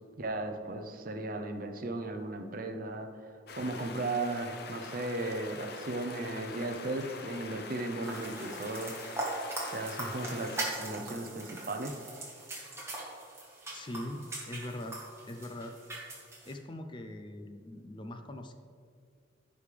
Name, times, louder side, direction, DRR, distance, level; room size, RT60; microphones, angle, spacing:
voice 1, 0.2-8.9 9.7-12.0, right 2 dB, 45° right, 6 dB, 0.6 m, -36 dB
sound 1, 3.5-10.7, left 4 dB, 55° left, 0.7 m, -44 dB
sound 2, 8.0-16.5, right 2 dB, 15° right, 1.4 m, -40 dB
voice 2, 13.7-15.0 15.2-15.8 16.4-18.5, left 1 dB, 25° left, 6 dB, 0.4 m, -41 dB
15.0 x 5.1 x 3.3 m, 2.2 s
head